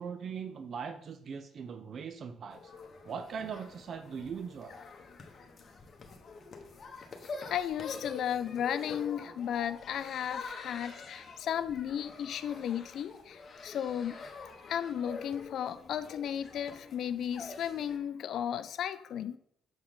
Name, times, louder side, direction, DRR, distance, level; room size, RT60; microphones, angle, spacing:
voice 1, 0.0-2.7 3.0-4.8, right 6 dB, 55° right, 9 dB, 0.4 m, -40 dB
sound 1, 2.5-18.0, left 4 dB, 45° left, 1.1 m, -46 dB
voice 2, 7.5-14.2 14.7-19.4, left 9 dB, 70° left, 14 dB, 0.4 m, -34 dB
7.5 x 4.6 x 3.7 m, 0.71 s
cardioid pair, 90°, 0 cm